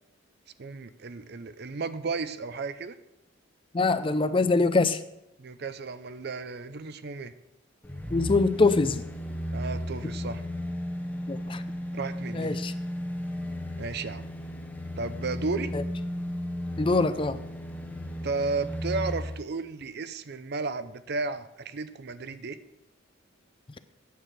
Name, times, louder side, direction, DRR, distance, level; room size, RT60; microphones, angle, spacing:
voice 1, 0.6-2.9 5.4-7.3 9.5-10.4 11.9-12.6 13.8-14.3 15.0-15.7 18.2-22.6, right 4 dB, 55° right, 12 dB, 0.6 m, -33 dB
voice 2, 3.7-5.0 8.1-9.0 11.3-11.6 12.3-12.7 15.7-15.8 16.8-17.4, left 3 dB, 25° left, 12 dB, 0.5 m, -24 dB
sound 1, 7.8-19.4 19.8-19.9, left 1 dB, 10° left, 0.9 m, -34 dB
9.4 x 6.3 x 7.4 m, 0.85 s
head